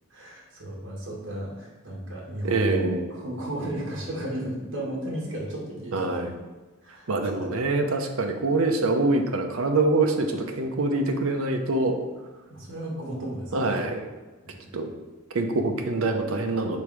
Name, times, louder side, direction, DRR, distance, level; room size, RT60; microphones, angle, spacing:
voice 1, 0.1-6.4 6.8-7.5 12.5-13.8 14.4-14.7, right 1 dB, 60° right, -3 dB, 1.8 m, -34 dB
voice 2, 2.4-3.0 5.9-6.3 7.1-12.0 13.5-14.0 14.7-14.9 15.3-16.8, right 2 dB, 80° right, 5 dB, 0.7 m, -25 dB
5.3 x 3.9 x 4.7 m, 1.2 s
head